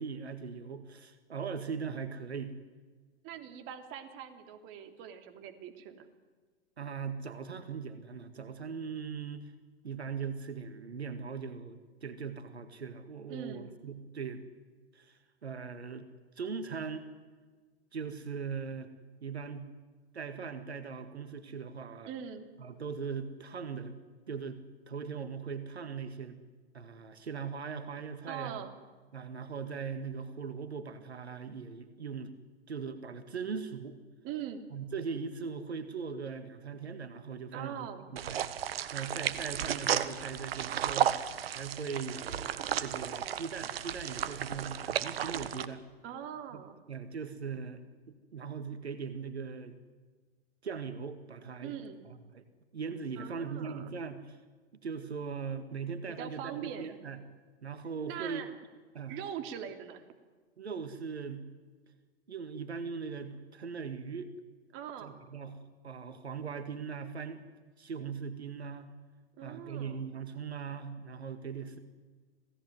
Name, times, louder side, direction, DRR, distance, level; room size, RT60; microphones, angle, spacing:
voice 1, 0.0-2.5 6.8-9.5 9.8-14.4 14.9-16.1 16.4-17.1 17.9-18.9 19.2-19.7 20.1-22.1 22.6-24.0 24.3-24.6 24.9-26.4 26.7-28.6 29.1-32.4 32.7-34.0 34.7-38.5 38.9-45.8 46.5-47.8 48.3-49.8 50.6-51.7 52.1-52.4 52.7-54.4 54.8-57.2 57.6-58.4 58.9-59.2 60.6-61.5 62.3-64.3 65.0-67.4 67.8-68.9 69.4-71.8, right 5 dB, 85° right, 10 dB, 2.0 m, -40 dB
voice 2, 3.2-6.1 13.3-13.7 22.0-22.4 28.3-28.7 34.2-34.7 37.5-38.0 46.0-46.8 51.6-52.1 53.1-53.9 56.1-57.0 58.0-58.5 59.1-60.0 64.7-65.2 69.4-70.0, right 9 dB, 40° right, 7 dB, 3.1 m, -42 dB
sound 1, 38.2-45.7, right 10 dB, 70° right, 1.6 m, -34 dB
27.0 x 17.5 x 9.3 m, 1.4 s
hypercardioid pair, 110°, 31 cm